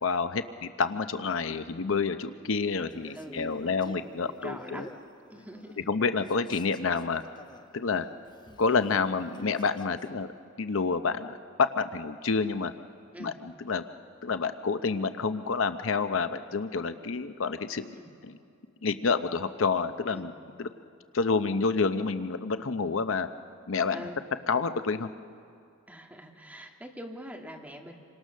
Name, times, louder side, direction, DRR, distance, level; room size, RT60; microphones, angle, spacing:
voice 1, 0.0-4.9 5.9-7.2 7.7-8.1 8.6-10.3 10.6-12.7 13.2-13.8 14.2-17.9 18.2-18.3 18.8-20.3 20.6-20.7 21.1-23.3 23.7-24.1 24.5-25.1, left 4 dB, 70° left, 10 dB, 0.7 m, -28 dB
Male speech man speaking, 2.9-5.9 6.2-10.3, left 1 dB, 20° left, 1.0 m, -50 dB
voice 2, 3.1-5.0 5.3-5.8 8.9-9.0 13.1-13.4 18.0-18.2 20.1-20.3 23.9-24.2 25.9-27.9, equal, 5° right, 1 dB, 2.0 m, -44 dB
27.5 x 24.5 x 6.4 m, 2.4 s
head